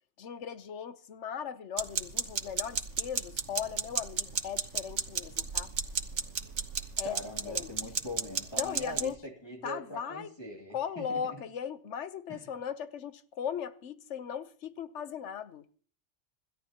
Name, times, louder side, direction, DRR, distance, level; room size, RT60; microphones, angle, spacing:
voice 1, 0.2-5.7 7.0-7.2 7.4-7.8 8.5-9.2 9.6-10.3 10.7-15.6, left 8 dB, 85° left, 1.2 m, -38 dB
sound 1, 1.8-9.1, right 6 dB, 85° right, 1.4 m, -33 dB
voice 2, 7.0-11.2 12.3-12.4, left 1 dB, 20° left, 2.6 m, -42 dB
26.5 x 13.0 x 2.9 m
omnidirectional pair, 1.2 m